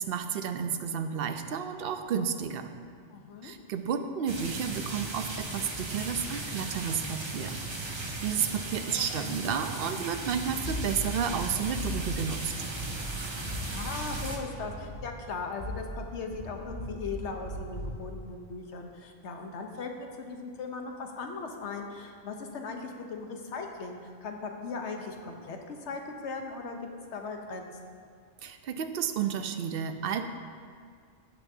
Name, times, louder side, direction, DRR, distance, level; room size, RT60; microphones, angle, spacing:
voice 1, 0.0-2.7 3.4-12.5 28.4-30.2, right 7 dB, 60° right, 8 dB, 0.7 m, -32 dB
voice 2, 3.1-3.5 13.7-28.0, left 4 dB, 70° left, 3 dB, 1.1 m, -38 dB
sound 1, 4.3-14.4, right 2 dB, 30° right, 0.7 m, -37 dB
sound 2, 10.6-18.1, left 1 dB, 45° left, 2.0 m, -39 dB
15.0 x 6.1 x 2.7 m, 2.1 s
omnidirectional pair, 1.2 m